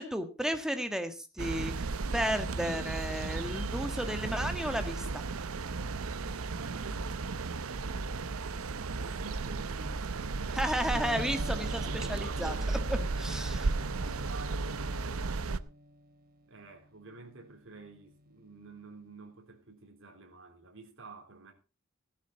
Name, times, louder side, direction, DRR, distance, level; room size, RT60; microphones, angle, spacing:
voice 1, 0.0-1.7 2.1-5.2 10.5-12.6 12.9-13.7, equal, 5° right, 1.5 m, -33 dB
sound 1, 1.4-15.6, right 3 dB, 85° right, 0.7 m, -34 dB
voice 2, 6.5-7.3 9.0-10.8 11.8-12.5 12.9-13.1 13.8-15.5 16.4-21.5, right 2 dB, 65° right, 3.5 m, -49 dB
Electric guitar, 10.9-18.8, left 1 dB, 45° right, 1.5 m, -47 dB
15.0 x 11.5 x 4.0 m
head